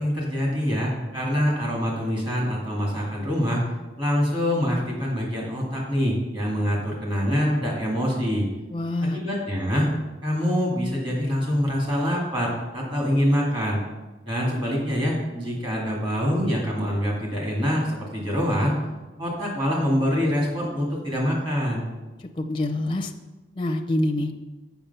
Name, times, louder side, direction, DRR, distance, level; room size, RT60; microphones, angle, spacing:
voice 1, 0.0-3.6 4.0-8.5 9.1-9.9 10.2-13.8 14.3-18.8 19.2-21.8, equal, 30° right, -3 dB, 2.3 m, -25 dB
voice 2, 8.7-9.2 22.2-23.1 23.6-24.3, left 1 dB, 25° left, 3 dB, 0.5 m, -26 dB
7.2 x 5.9 x 5.5 m, 1.1 s
head